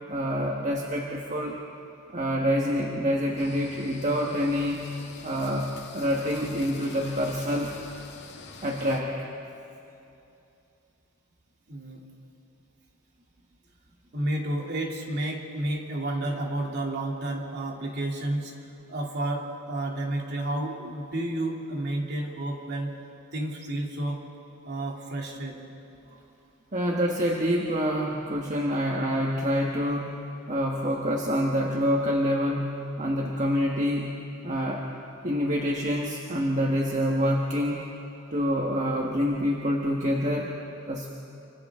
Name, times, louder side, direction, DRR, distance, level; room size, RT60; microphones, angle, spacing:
voice 1, 0.1-1.6 2.1-4.8 5.2-7.7 8.6-9.1 26.7-30.1 30.5-32.7 33.0-34.1 34.4-34.8 35.2-37.8 38.3-40.5 40.9-41.1, equal, 35° right, -1 dB, 1.4 m, -26 dB
sound 1, 3.4-9.0, left 4 dB, 55° left, 2.3 m, -46 dB
voice 2, 11.7-12.0 14.1-18.5 18.9-22.9 23.3-24.2 24.6-25.6, right 1 dB, 50° right, -1 dB, 2.8 m, -31 dB
29.0 x 25.5 x 3.7 m, 2.8 s
head